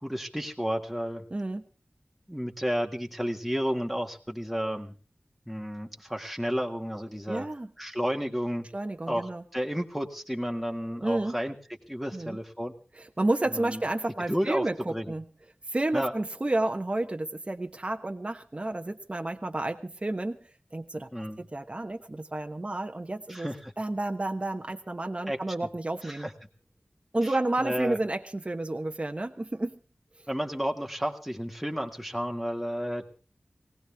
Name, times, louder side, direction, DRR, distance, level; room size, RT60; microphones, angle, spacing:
voice 1, 0.0-1.3 2.3-5.0 5.5-7.5 7.8-8.7 9.1-11.5 11.9-12.7 13.5-13.8 14.3-14.6 14.9-15.1 15.9-16.1 21.1-21.4 23.3-23.7 25.3-25.4 26.0-26.3 27.2-28.0 30.3-33.1, equal, ahead, 2 dB, 1.8 m, -32 dB
voice 2, 1.3-1.6 7.3-7.7 8.7-9.4 11.0-11.3 12.1-12.4 13.0-15.3 15.7-20.4 20.7-23.5 23.8-26.3 27.1-29.8, right 2 dB, 35° right, 5 dB, 1.2 m, -31 dB
20.0 x 17.5 x 3.5 m, 0.36 s
wide cardioid pair, 75°, 3 cm